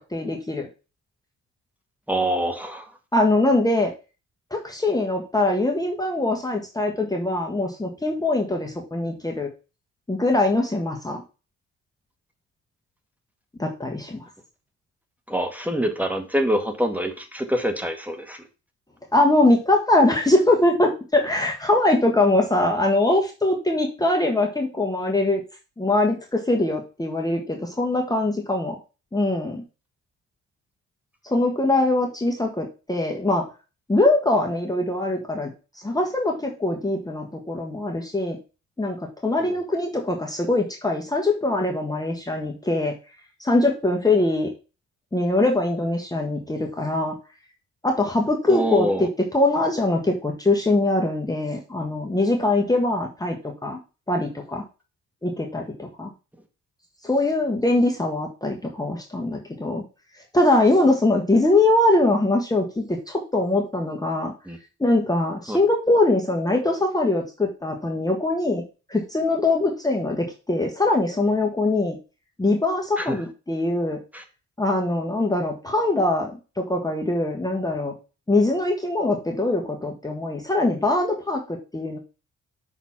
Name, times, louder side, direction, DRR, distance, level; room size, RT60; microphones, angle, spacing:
voice 1, 0.1-0.7 3.1-3.9 4.5-9.5 10.1-11.2 13.6-14.2 19.1-25.4 25.8-28.8 29.1-29.6 31.2-33.4 33.9-35.5 35.8-38.4 38.8-39.0 39.2-42.9 43.4-44.5 45.1-47.1 47.8-53.4 53.6-53.8 54.1-54.6 55.2-56.1 57.0-59.8 60.3-64.3 64.8-68.6 68.9-72.0 72.4-74.0 74.6-76.3 76.6-77.9 78.3-82.0, left 2 dB, 10° left, 1 dB, 1.4 m, -22 dB
voice 2, 2.1-2.9 15.3-18.4 39.4-39.6 48.5-49.1 64.5-64.6 65.5-65.6 73.0-73.2 74.1-74.2, equal, 5° right, 4 dB, 1.6 m, -25 dB
6.1 x 4.1 x 5.7 m, 0.32 s
cardioid pair, 90°, 30 cm